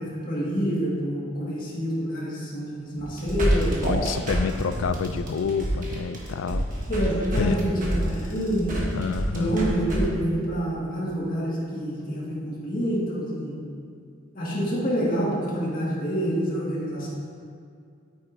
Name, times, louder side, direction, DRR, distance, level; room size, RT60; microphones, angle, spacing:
voice 1, 0.0-3.8 6.9-8.8 9.3-13.6 14.3-17.1, equal, 40° left, -6 dB, 2.0 m, -27 dB
sound 1, 3.0-10.0, equal, 40° right, 1.4 m, -27 dB
voice 2, 3.8-6.7 7.4-7.6 8.2-8.3 8.9-9.5 14.5-14.6, left 5 dB, 70° left, 11 dB, 0.4 m, -28 dB
8.8 x 8.7 x 2.7 m, 2.3 s
head